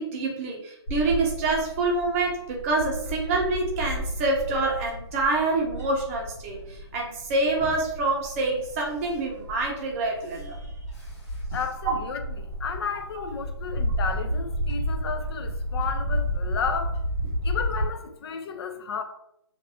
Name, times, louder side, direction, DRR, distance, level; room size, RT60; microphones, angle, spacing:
voice 1, 0.0-10.6 11.8-11.9 13.1-13.2, right 2 dB, 30° right, 0.6 m, -26 dB
Bird / Wind, 0.9-17.8, equal, 85° left, 1.5 m, -32 dB
voice 2, 11.5-17.0 17.4-19.0, left 6 dB, 60° left, 0.4 m, -33 dB
2.6 x 2.2 x 2.6 m
hypercardioid pair, 145°, 15 cm